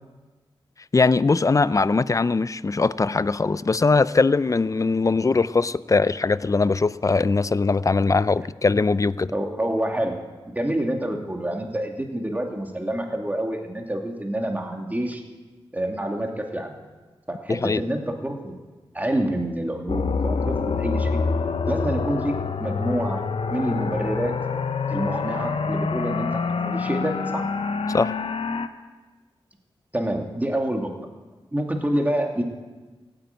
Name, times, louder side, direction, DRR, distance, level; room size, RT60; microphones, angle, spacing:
voice 1, 0.9-9.3 17.5-17.8 27.9-28.1, left 3 dB, 35° left, 17 dB, 0.5 m, -21 dB
voice 2, 9.3-10.2 10.5-15.2 15.7-16.8 17.3-18.5 18.9-21.2 21.7-23.2 23.5-24.3 24.9-27.4 29.9-30.9 31.5-32.4, right 1 dB, 15° right, 2 dB, 2.5 m, -27 dB
sound 1, 19.9-28.7, left 5 dB, 70° left, 0.9 m, -26 dB
15.5 x 9.0 x 9.3 m, 1.3 s
cardioid pair, 60°, 10 cm